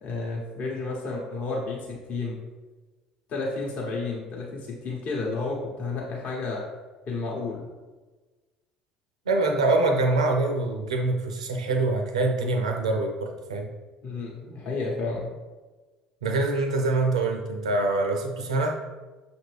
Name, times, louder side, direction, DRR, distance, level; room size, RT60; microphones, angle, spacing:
voice 1, 0.0-2.4 3.3-6.6 7.1-7.7 14.0-15.3, left 3 dB, 55° left, -3 dB, 0.9 m, -31 dB
voice 2, 9.3-13.7 16.2-18.8, right 2 dB, 85° right, 3 dB, 0.5 m, -25 dB
6.0 x 2.6 x 3.3 m, 1.3 s
hypercardioid pair, 65°, 3 cm